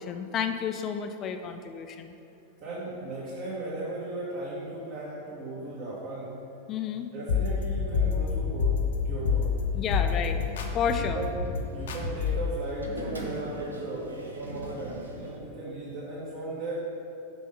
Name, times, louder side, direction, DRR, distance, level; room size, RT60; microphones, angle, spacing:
voice 1, 0.0-2.1 6.7-7.1 9.8-10.4 10.7-11.2, left 7 dB, 30° left, 7 dB, 0.5 m, -31 dB
voice 2, 2.6-6.3 7.1-9.5 9.9-10.2 10.8-11.3 11.7-14.1 14.3-16.8, right 2 dB, 45° right, -9 dB, 2.1 m, -37 dB
sound 1, 7.3-12.5, left 6 dB, 60° left, 0.8 m, -28 dB
sound 2, 10.1-15.4, right 1 dB, 80° right, 1.0 m, -41 dB
6.9 x 6.2 x 5.9 m, 2.7 s
figure-of-eight pair, 90°, 0 cm